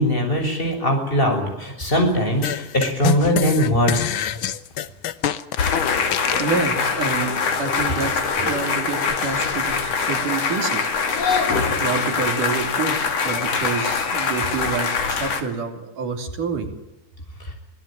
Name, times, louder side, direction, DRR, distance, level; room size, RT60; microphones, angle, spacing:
voice 1, 0.0-4.1, equal, 15° left, 3 dB, 6.7 m, -20 dB
sound 1, 2.4-6.5, left 10 dB, 70° left, 1.2 m, -25 dB
sound 2, 5.6-15.4, left 5 dB, 55° left, 3.4 m, -23 dB
voice 2, 6.4-10.9 11.8-13.0 13.2-16.7, right 5 dB, 90° right, 4 dB, 4.8 m, -28 dB
25.0 x 17.0 x 9.0 m, 0.93 s
omnidirectional pair, 3.6 m